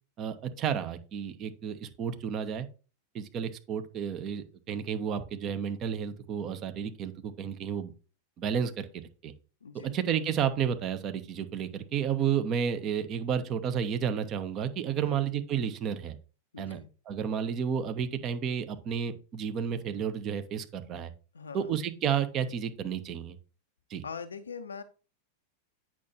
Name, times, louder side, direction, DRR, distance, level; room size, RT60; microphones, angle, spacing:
voice 1, 0.2-2.7 3.1-7.9 8.4-9.3 9.8-16.2 16.6-16.8 17.1-21.1 21.5-23.4 23.9-24.0, right 8 dB, 35° right, 10 dB, 0.9 m, -31 dB
voice 2, 9.6-10.0 15.0-15.3 16.5-16.9 21.3-21.8 24.0-24.8, left 5 dB, 70° left, 9 dB, 0.5 m, -42 dB
8.5 x 5.8 x 2.8 m, 0.35 s
figure-of-eight pair, 90°, 0 cm